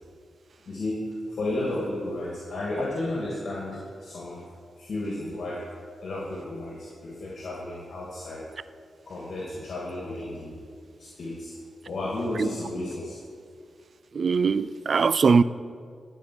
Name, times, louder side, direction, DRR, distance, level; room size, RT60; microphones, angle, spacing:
voice 1, 0.7-4.4 4.8-5.6 6.0-8.4 9.1-10.6 11.0-11.5 11.9-13.2, left 1 dB, 65° left, -4 dB, 2.3 m, -33 dB
voice 2, 14.1-15.4, right 5 dB, 60° right, 17 dB, 0.4 m, -21 dB
13.5 x 5.2 x 7.8 m, 2.2 s
cardioid pair, 50°, 0 cm